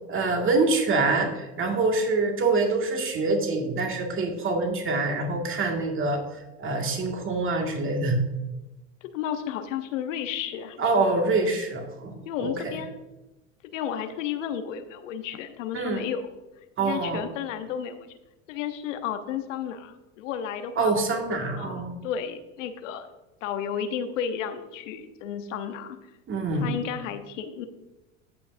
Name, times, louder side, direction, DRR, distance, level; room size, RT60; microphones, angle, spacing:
voice 1, 0.1-6.2 6.6-8.2 10.8-12.1 12.4-12.5 15.7-16.1 16.8-17.2 20.8-22.0 26.3-26.7, right 3 dB, 30° right, 2 dB, 2.1 m, -25 dB
voice 2, 9.0-10.8 12.2-13.0 13.7-16.2 16.8-18.1 18.5-20.9 21.6-23.1 23.4-26.0 26.5-27.7, left 8 dB, 70° left, 8 dB, 1.0 m, -32 dB
16.5 x 5.7 x 2.7 m, 1.0 s
hypercardioid pair, 85°, 39 cm